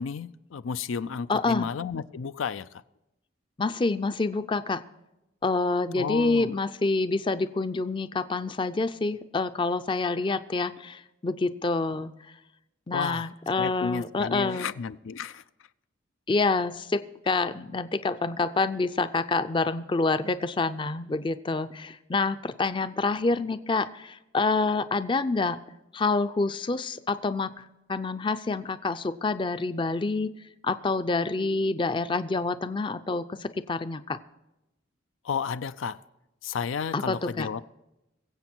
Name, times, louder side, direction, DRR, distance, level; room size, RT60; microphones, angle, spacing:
voice 1, 0.0-2.7 6.0-6.5 12.9-13.3 13.6-15.4 35.2-36.0 36.4-37.6, left 6 dB, 90° left, 14 dB, 0.4 m, -32 dB
voice 2, 1.3-1.7 3.6-4.8 5.4-12.1 12.9-14.7 16.3-25.6 25.9-27.6 27.9-30.3 30.6-34.2 36.9-37.5, left 3 dB, 25° left, 12 dB, 0.4 m, -27 dB
22.5 x 7.9 x 4.4 m, 0.93 s
head